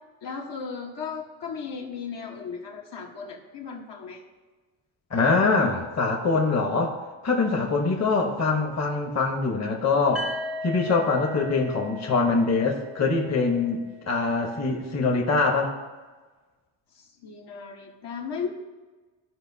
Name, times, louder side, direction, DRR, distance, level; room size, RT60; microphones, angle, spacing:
voice 1, 0.2-4.2 16.9-18.5, left 6 dB, 60° left, 0 dB, 1.4 m, -36 dB
voice 2, 5.1-7.0 7.2-10.3 10.6-13.8 14.1-15.7, left 4 dB, 35° left, 1 dB, 1.2 m, -23 dB
sound 1, 10.2-14.0, left 1 dB, ahead, 0.6 m, -37 dB
14.5 x 5.1 x 2.8 m, 1.3 s
cardioid pair, 120°, 47 cm